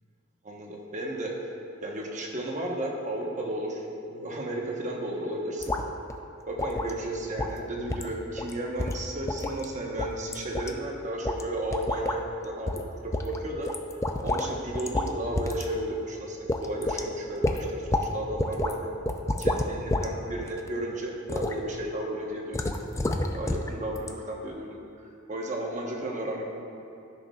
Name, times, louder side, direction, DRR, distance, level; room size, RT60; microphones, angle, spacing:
voice 1, 0.4-1.4 1.8-5.8 6.5-12.7 13.0-13.7 14.2-18.9 19.4-22.6 23.3-24.7 25.0-26.4, right 1 dB, 35° right, -1 dB, 1.1 m, -33 dB
sound 1, 5.6-5.8 6.1-6.2 6.6-6.9 7.4-7.6 7.9-8.1 8.4-8.5 8.8-9.6 10.0-10.7 11.2-11.4 11.7-12.2 12.7-12.8 13.1-14.5 14.7-15.1 15.4-15.7 16.0-16.1 16.5-17.0 17.4-18.1 18.4-18.7 19.1-20.1 20.4-20.7 21.3-21.6 22.5-23.7 24.0-24.1, left 2 dB, 15° left, 0.3 m, -29 dB
15.0 x 6.3 x 2.4 m, 3.0 s
head